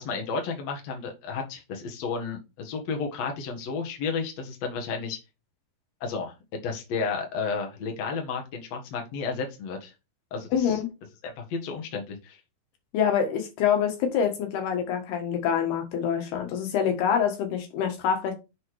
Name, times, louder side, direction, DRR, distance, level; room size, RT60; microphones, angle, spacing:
voice 1, 0.0-5.2 6.0-6.3 6.6-9.9 10.3-10.8 11.2-12.4, left 5 dB, 50° left, 2.5 m, -32 dB
voice 2, 10.5-10.9 12.9-18.3, left 8 dB, 85° left, 3.6 m, -26 dB
7.0 x 5.4 x 4.8 m
omnidirectional pair, 4.4 m